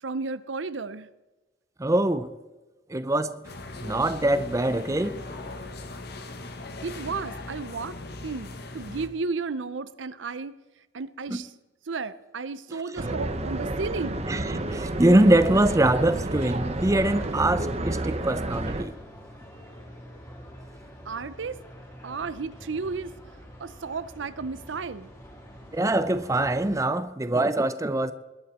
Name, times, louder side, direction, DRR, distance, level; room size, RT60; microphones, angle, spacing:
voice 1, 0.0-1.1 6.8-10.6 10.9-11.5 11.9-14.2 21.0-21.6 22.0-23.1 23.6-25.1, right 4 dB, 90° right, 0.7 m, -33 dB
voice 2, 1.8-2.3 2.9-3.4 3.8-5.2 11.3-11.4 14.3-14.4 14.7-19.0 25.7-28.1, right 1 dB, 15° right, 0.6 m, -23 dB
sound 1, 3.4-9.1, left 2 dB, 60° left, 1.5 m, -39 dB
sound 2, 13.0-18.8, right 1 dB, 35° right, 1.0 m, -30 dB
sound 3, 13.5-26.8, equal, 20° left, 3.4 m, -46 dB
21.0 x 11.5 x 4.3 m
head